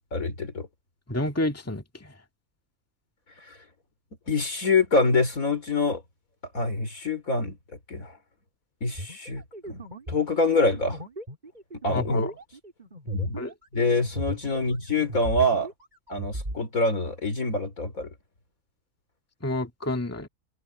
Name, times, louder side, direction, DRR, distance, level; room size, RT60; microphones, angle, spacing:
voice 1, 0.1-0.7 3.4-3.6 4.3-6.0 6.5-7.6 7.9-8.2 8.8-11.0 11.8-12.3 13.1-13.4 13.7-15.7 16.1-18.1, left 2 dB, 75° left, 4.5 m, -25 dB
voice 2, 1.1-2.1 11.9-12.3 13.4-13.5 19.4-20.3, left 1 dB, 10° left, 1.9 m, -29 dB
sound 1, 9.0-14.7 15.0-16.6, right 1 dB, 30° right, 5.0 m, -37 dB
omnidirectional pair, 1.5 m